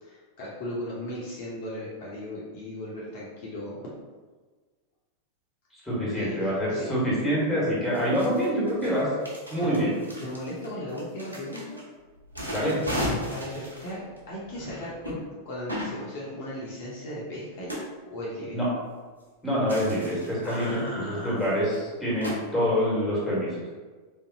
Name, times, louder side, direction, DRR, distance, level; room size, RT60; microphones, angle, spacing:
voice 1, 0.0-3.8 6.0-6.9 8.8-8.9 9.6-9.9 10.2-11.8 13.3-15.2 15.4-17.8 18.1-18.6 20.4-21.4, left 1 dB, 50° left, -6 dB, 0.8 m, -37 dB
voice 2, 5.7-9.1 9.5-9.9 12.5-12.8 18.5-18.7 19.4-23.6, equal, 5° left, -7 dB, 1.5 m, -26 dB
sound 1, 7.2-7.3 7.9-11.8 12.2-15.2 15.7-16.0 17.7-17.8 19.7-20.9 21.4-21.5 21.7-21.8 22.2-22.4, equal, 90° left, 0.8 m, -35 dB
3.6 x 2.6 x 2.8 m, 1.4 s
figure-of-eight pair, 90°, 0 cm